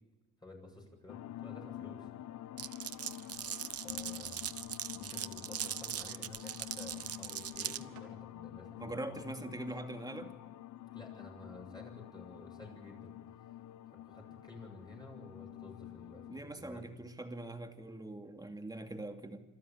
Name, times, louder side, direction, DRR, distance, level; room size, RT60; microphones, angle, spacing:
voice 1, 0.4-2.1 3.8-4.5 4.9-9.0 10.9-13.1 13.9-16.8, left 2 dB, 15° left, -1 dB, 7.4 m, -52 dB
sound 1, 1.1-16.4, left 13 dB, 70° left, 0.8 m, -48 dB
Glass, 2.6-7.8, right 10 dB, 55° right, 0.8 m, -40 dB
sound 2, 2.6-4.3 6.8-8.1, right 7 dB, 85° right, 4.0 m, -64 dB
voice 2, 8.8-10.3 16.3-19.4, right 1 dB, 15° right, 5 dB, 2.5 m, -42 dB
27.0 x 13.0 x 8.9 m, 1.2 s
cardioid pair, 90°, 30 cm